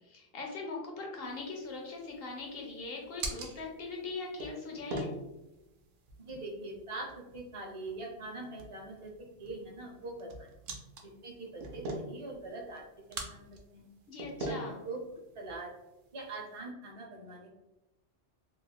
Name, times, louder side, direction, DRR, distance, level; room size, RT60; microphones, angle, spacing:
voice 1, 0.1-5.1 14.1-14.7, left 3 dB, 60° left, 1 dB, 0.7 m, -40 dB
sound 1, 1.2-16.6, right 2 dB, 70° right, 0.9 m, -45 dB
voice 2, 6.2-7.1 7.3-9.1 9.4-10.5 11.0-12.8 13.1-13.9 14.5-14.6 14.8-15.0 15.3-15.7 16.1-17.6, right 2 dB, 35° right, -1 dB, 0.6 m, -43 dB
3.1 x 2.8 x 2.2 m, 0.97 s
omnidirectional pair, 1.3 m